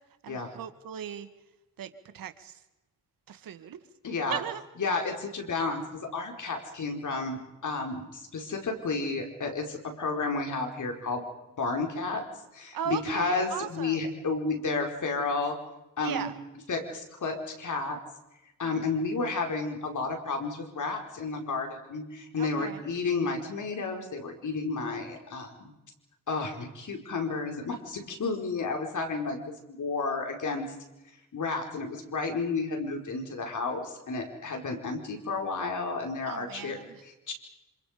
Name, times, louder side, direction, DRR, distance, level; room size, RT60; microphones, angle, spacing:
voice 1, 0.2-1.3 1.8-2.6 3.3-3.8 4.3-4.6 12.7-14.0 16.0-16.3 18.6-18.9 22.4-22.8 36.2-37.0, right 9 dB, 90° right, 10 dB, 1.7 m, -37 dB
voice 2, 4.0-4.4 4.8-11.2 11.6-12.2 12.5-15.6 16.0-16.3 16.7-18.0 18.6-25.7 26.3-30.7 31.3-36.8 37.0-37.3, left 3 dB, 60° left, 3 dB, 4.7 m, -32 dB
27.0 x 26.5 x 5.2 m, 0.98 s
cardioid pair, 85°, 33 cm